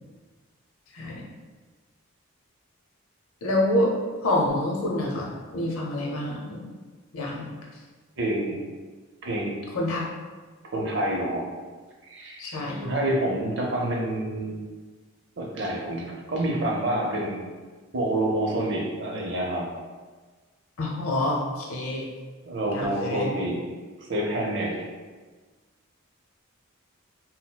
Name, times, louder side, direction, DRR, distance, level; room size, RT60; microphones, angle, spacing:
voice 1, 3.4-3.9 4.2-6.6 7.1-7.5 9.7-10.1 12.4-12.8 20.8-22.0 22.7-23.3, left 1 dB, 85° left, -2 dB, 0.7 m, -27 dB
voice 2, 8.2-8.6 9.2-9.5 10.6-11.5 12.0-12.4 12.8-14.6 15.4-17.4 17.9-19.6 22.5-23.6 24.1-24.8, right 1 dB, 55° right, -1 dB, 0.5 m, -27 dB
4.1 x 2.0 x 2.2 m, 1.4 s
head